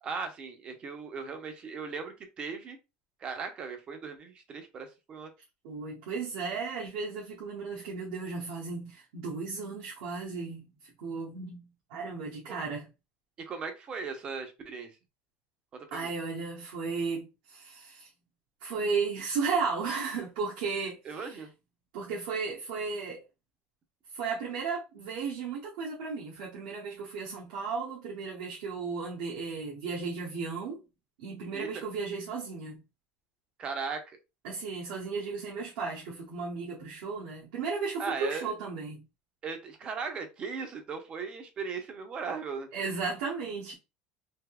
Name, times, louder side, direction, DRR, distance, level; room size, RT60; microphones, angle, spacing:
voice 1, 0.0-2.8 3.2-5.3 12.5-12.6 13.5-14.9 15.7-16.1 21.1-21.5 31.5-31.8 33.6-34.2 38.0-38.5 39.4-42.7, right 5 dB, 25° right, 0.6 m, -38 dB
voice 2, 5.6-12.9 15.9-18.1 18.6-21.4 21.9-23.2 24.1-30.8 31.2-32.8 34.4-39.0 42.7-43.7, right 4 dB, 75° right, 0.9 m, -35 dB
3.4 x 2.7 x 2.2 m
cardioid pair, 170°, 4 cm